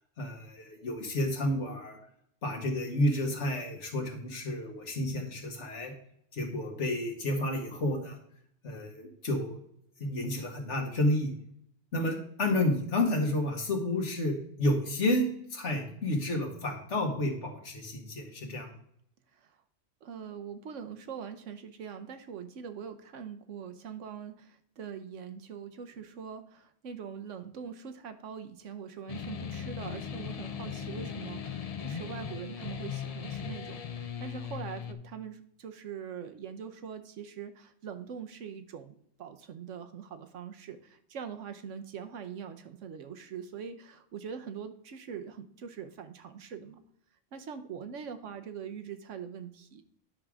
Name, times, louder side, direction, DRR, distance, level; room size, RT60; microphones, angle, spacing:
voice 1, 0.2-2.0 2.4-5.9 6.3-8.2 8.6-9.6 10.0-11.3 11.9-15.2 15.5-18.7 30.9-31.1, left 1 dB, 70° left, 3 dB, 1.8 m, -30 dB
voice 2, 20.0-46.8 47.3-49.8, right 7 dB, 80° right, 8 dB, 1.2 m, -43 dB
sound 1, 29.1-34.9, left 7 dB, 45° left, 0.5 m, -38 dB
9.9 x 3.6 x 6.2 m, 0.67 s
omnidirectional pair, 1.3 m